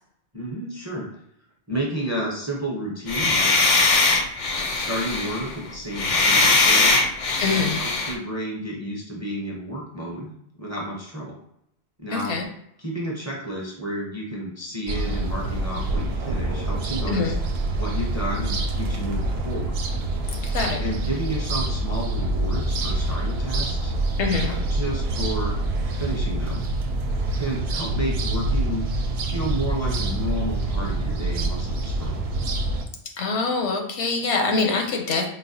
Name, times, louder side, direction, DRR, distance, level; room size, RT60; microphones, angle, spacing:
voice 1, 0.3-1.1 1.7-3.5 4.7-7.0 7.4-10.3 10.6-11.4 12.0-12.3 12.8-17.3 17.8-19.7 20.8-23.9 24.4-25.5 25.9-26.6 27.3-28.8 29.3-32.3, right 1 dB, 20° right, -3 dB, 0.5 m, -31 dB
sound 1, 3.1-8.1, left 3 dB, 55° left, 0.5 m, -20 dB
voice 2, 7.4-7.8 12.1-12.4 17.1-17.3 20.5-20.8 24.2-24.6 33.2-35.3, left 4 dB, 85° left, 3 dB, 1.0 m, -24 dB
sound 2, 14.9-32.8, right 2 dB, 70° right, 0.8 m, -26 dB
3.9 x 2.1 x 2.7 m, 0.73 s
omnidirectional pair, 1.1 m